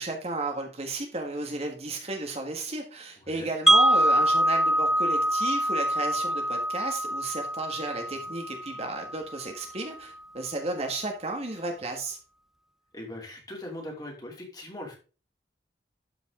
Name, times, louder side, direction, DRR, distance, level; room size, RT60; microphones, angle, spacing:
voice 1, 0.0-12.2, right 2 dB, 35° right, 3 dB, 1.5 m, -33 dB
Wind chime, 3.7-9.6, equal, ahead, 0.4 m, -25 dB
voice 2, 12.9-15.0, left 1 dB, 20° left, 0 dB, 2.9 m, -40 dB
12.0 x 5.5 x 3.7 m, 0.35 s
head